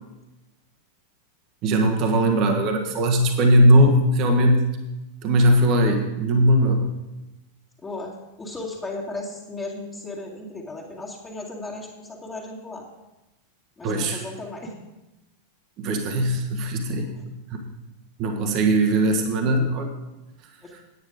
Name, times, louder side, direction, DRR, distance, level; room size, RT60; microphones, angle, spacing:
voice 1, 1.6-4.6 5.2-6.8 13.8-14.2 15.8-17.1 17.5-17.6 18.2-19.9, right 1 dB, 40° right, 3 dB, 1.4 m, -19 dB
voice 2, 7.8-12.8 13.8-14.7 17.1-17.2 20.6-20.7, left 2 dB, 15° left, -4 dB, 2.2 m, -35 dB
9.5 x 9.1 x 5.1 m, 1.0 s
figure-of-eight pair, 90°, 0 cm